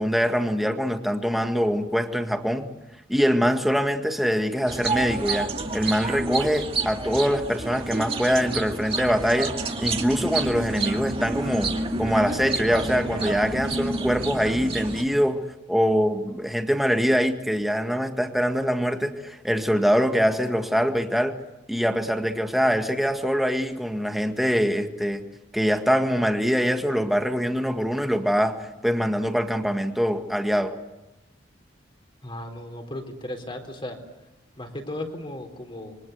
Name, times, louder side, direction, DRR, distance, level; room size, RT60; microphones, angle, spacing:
voice 1, 0.0-2.7 3.1-11.7 12.0-15.4 15.7-21.4 21.7-25.2 25.5-30.7, equal, ahead, 5 dB, 1.8 m, -24 dB
sound 1, 4.7-15.0, right 2 dB, 30° right, 2.4 m, -29 dB
voice 2, 32.2-34.0 34.6-36.0, left 1 dB, 30° left, 4 dB, 4.0 m, -35 dB
27.0 x 24.0 x 8.1 m, 0.97 s
head